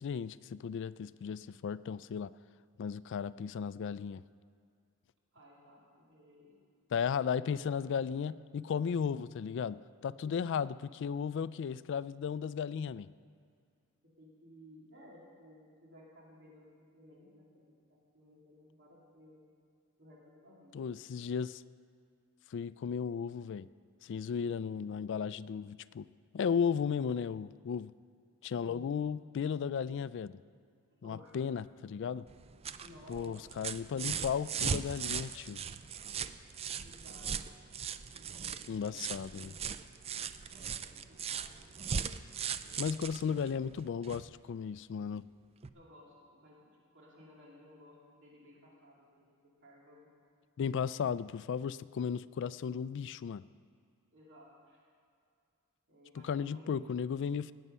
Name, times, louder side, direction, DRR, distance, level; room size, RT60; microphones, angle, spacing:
voice 1, 0.0-2.3 2.8-4.2 6.9-13.1 20.7-21.6 22.5-23.7 24.0-26.0 26.3-27.9 28.4-30.4 31.0-32.3 33.1-35.6 38.7-39.6 42.8-45.3 50.6-53.4 56.2-57.5, left 7 dB, 55° left, 17 dB, 0.3 m, -35 dB
voice 2, 5.3-6.5 7.4-7.6 14.2-19.4 20.0-20.9 28.6-28.9 30.9-31.4 32.8-33.4 36.8-37.5 38.1-39.2 40.5-41.6 42.6-43.4 45.7-49.3 49.6-50.1 54.1-54.8 55.9-56.7, left 1 dB, 55° right, -5 dB, 2.7 m, -58 dB
sound 1, 32.3-44.3 45.6-45.7, right 7 dB, 25° right, 0.3 m, -39 dB
18.5 x 8.1 x 5.5 m, 2.3 s
head